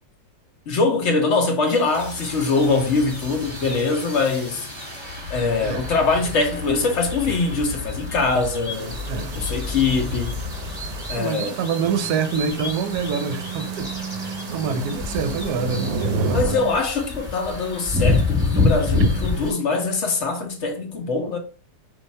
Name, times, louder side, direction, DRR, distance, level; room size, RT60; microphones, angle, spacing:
voice 1, 0.7-4.7 5.3-10.4 11.1-11.6 16.3-21.4, left 3 dB, 55° left, 0.8 m, -23 dB
sound 1, 1.7-19.5, left 3 dB, ahead, 1.2 m, -29 dB
sound 2, 1.9-11.5 11.7-16.8, left 1 dB, 25° right, 0.9 m, -35 dB
voice 2, 5.6-5.9 7.3-7.4 9.0-9.5 11.1-13.9 14.2-16.6, right 6 dB, 70° right, 1.1 m, -26 dB
sound 3, 8.7-16.4, right 3 dB, 85° right, 1.3 m, -33 dB
4.8 x 2.4 x 4.2 m
omnidirectional pair, 2.0 m